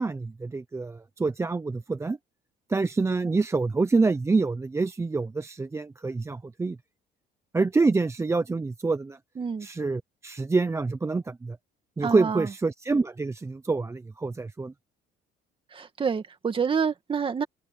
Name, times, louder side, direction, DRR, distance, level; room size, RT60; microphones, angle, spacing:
voice 1, 0.0-2.2 2.7-6.8 7.5-9.2 9.6-11.6 12.0-14.7, right 3 dB, 15° right, 0.7 m, -26 dB
voice 2, 9.4-9.7 12.0-12.5 15.7-17.4, right 6 dB, 30° right, 2.2 m, -28 dB
cardioid pair, 110°, 17 cm